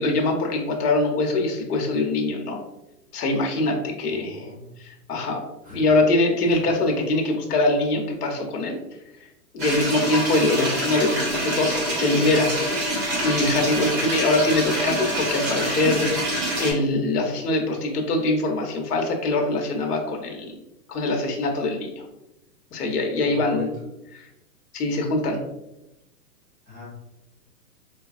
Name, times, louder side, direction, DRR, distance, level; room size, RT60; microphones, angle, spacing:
voice 1, 0.0-2.6 3.1-4.5 4.8-5.4 5.7-8.7 9.5-12.5 13.2-16.2 16.6-20.6 20.9-22.0 22.7-23.7 24.1-24.2 24.7-25.4, left 2 dB, 70° left, 2 dB, 0.9 m, -23 dB
voice 2, 4.1-4.7 5.6-5.8 6.4-6.6 23.2-23.7 26.7-26.8, left 2 dB, 5° left, -14 dB, 0.7 m, -39 dB
sound 1, 9.6-16.7, right 1 dB, 40° right, 1.5 m, -26 dB
4.0 x 2.2 x 2.4 m, 0.92 s
hypercardioid pair, 165°, 48 cm